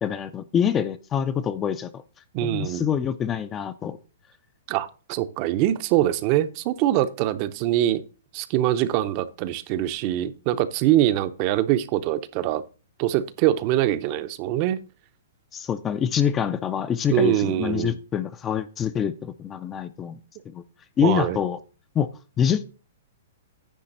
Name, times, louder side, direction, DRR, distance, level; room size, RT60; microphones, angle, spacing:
voice 1, 0.0-2.0 2.4-4.0 15.5-20.2 20.5-20.6 21.0-21.6 21.9-22.1 22.4-22.6, left 8 dB, 15° left, 0.4 m, -25 dB
voice 2, 2.3-2.9 4.7-8.0 8.3-12.6 13.0-14.8 17.1-18.0 21.0-21.4, right 13 dB, 35° right, 0.6 m, -23 dB
10.0 x 3.4 x 6.5 m
hypercardioid pair, 155°, 0 cm